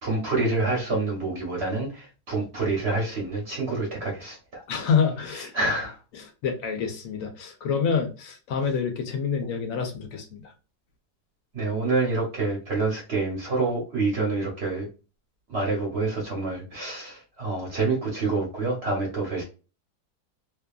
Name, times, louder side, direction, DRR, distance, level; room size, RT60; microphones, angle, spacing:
voice 1, 0.0-4.4 5.4-5.9 11.5-14.9 15.5-19.4, right 3 dB, 45° right, -2 dB, 0.9 m, -27 dB
voice 2, 4.7-5.5 6.4-10.4, left 6 dB, 70° left, 5 dB, 0.8 m, -27 dB
2.8 x 2.4 x 2.3 m, 0.33 s
omnidirectional pair, 1.9 m